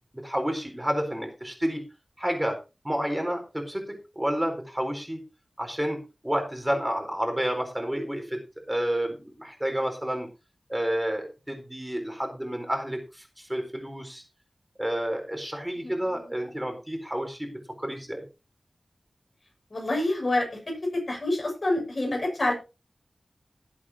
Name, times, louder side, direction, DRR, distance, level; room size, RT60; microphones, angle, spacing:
voice 1, 0.1-1.8 2.2-2.6 2.8-3.8 4.1-5.2 5.6-6.0 6.2-8.4 8.7-10.3 10.7-14.2 14.8-18.2, equal, 10° right, 4 dB, 4.3 m, -30 dB
voice 2, 15.8-16.3 19.7-20.6 20.9-22.5, left 1 dB, 55° left, 1 dB, 7.6 m, -27 dB
18.5 x 8.5 x 3.0 m, 0.29 s
wide cardioid pair, 60°, 0 cm